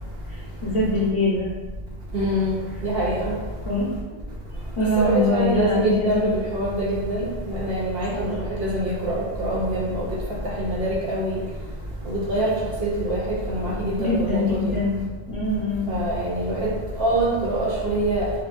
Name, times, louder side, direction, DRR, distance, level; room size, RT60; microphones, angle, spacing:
voice 1, 0.3-1.5 3.6-3.9 4.8-6.3 8.1-8.3 14.0-15.0 15.3-16.0, left 2 dB, 30° left, -9 dB, 0.7 m, -23 dB
voice 2, 2.1-2.5 2.8-3.3 5.0-7.2 7.5-10.1 10.6-11.4 12.1-12.5 12.8-13.2 13.5-14.7 15.9-16.7 17.0-18.3, right 1 dB, 60° right, -5 dB, 0.8 m, -24 dB
4.4 x 2.3 x 2.5 m, 1.3 s
omnidirectional pair, 1.2 m